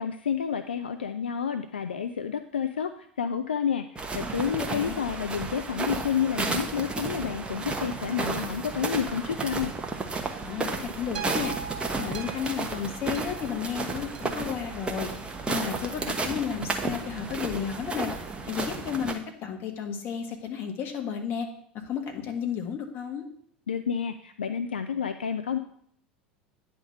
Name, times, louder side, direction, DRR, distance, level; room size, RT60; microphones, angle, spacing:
voice 1, 0.0-9.7 23.7-25.6, left 7 dB, 80° left, 9 dB, 0.4 m, -30 dB
sound 1, 4.0-19.1, right 3 dB, 20° right, 1.2 m, -33 dB
voice 2, 4.6-4.9 10.4-11.5 12.0-18.1 18.4-21.5 21.7-23.2, left 8 dB, 45° left, 4 dB, 1.7 m, -33 dB
sound 2, 11.1-15.5 16.1-16.2, right 6 dB, 75° right, 1.3 m, -41 dB
9.7 x 3.7 x 6.7 m, 0.63 s
figure-of-eight pair, 75°, 5 cm